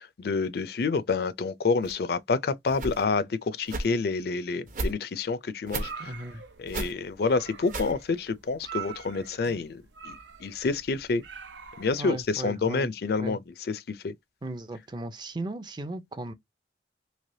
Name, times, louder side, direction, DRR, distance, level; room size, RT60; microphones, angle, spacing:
voice 1, 0.0-6.2 6.6-11.2 11.8-13.4 13.7-14.1, left 4 dB, 60° left, 0.4 m, -28 dB
sound 1, 1.8-1.9 2.7-3.0 3.7-3.9 4.7-4.9 5.7-5.9 6.7-6.9 7.7-7.9, right 2 dB, 45° right, 0.8 m, -33 dB
sound 2, 5.7-12.4, right 7 dB, 85° right, 0.7 m, -44 dB
voice 2, 6.0-6.4 9.4-9.6 12.0-12.9 13.2-13.4 14.4-16.3, right 1 dB, 25° right, 0.5 m, -36 dB
3.3 x 2.9 x 2.6 m
head